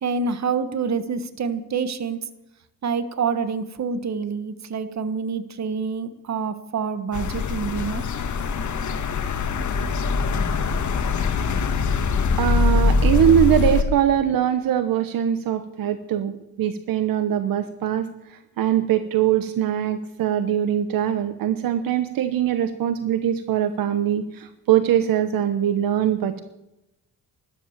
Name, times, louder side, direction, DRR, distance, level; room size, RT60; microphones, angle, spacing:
voice 1, 0.0-2.2 2.8-8.0, right 5 dB, 50° right, 11 dB, 1.6 m, -27 dB
sound 1, 7.1-13.8, left 4 dB, 55° left, 1.6 m, -23 dB
voice 2, 12.4-26.4, right 10 dB, 75° right, 11 dB, 1.1 m, -22 dB
13.0 x 13.0 x 7.3 m, 0.91 s
cardioid pair, 80°, 34 cm